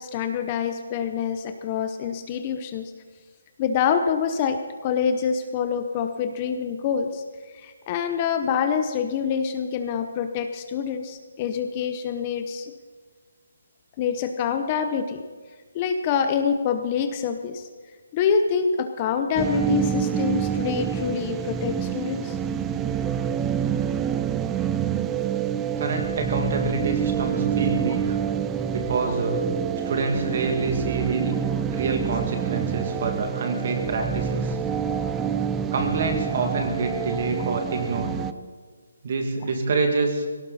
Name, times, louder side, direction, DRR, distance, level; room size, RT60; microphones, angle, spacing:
voice 1, 0.0-2.9 3.6-7.2 7.5-12.7 14.0-15.2 15.7-17.7 18.1-22.4 32.1-32.2, left 7 dB, 20° left, 7 dB, 0.7 m, -26 dB
sound 1, 19.4-38.3, right 8 dB, 10° right, 0.4 m, -27 dB
voice 2, 25.8-28.2 28.7-29.4 29.8-31.3 31.7-34.6 35.7-38.2 39.0-40.3, right 3 dB, 40° right, 3 dB, 2.3 m, -27 dB
18.5 x 17.5 x 4.2 m, 1.5 s
hypercardioid pair, 170°, 0 cm